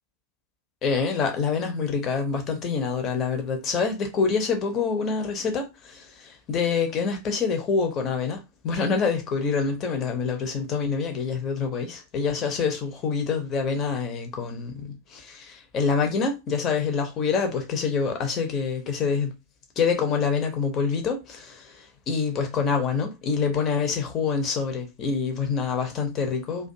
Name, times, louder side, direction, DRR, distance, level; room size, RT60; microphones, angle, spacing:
voice 1, 0.8-19.3 19.8-26.7, left 5 dB, 30° left, 0.7 m, -26 dB
2.4 x 2.3 x 2.6 m
figure-of-eight pair, 90°, 0 cm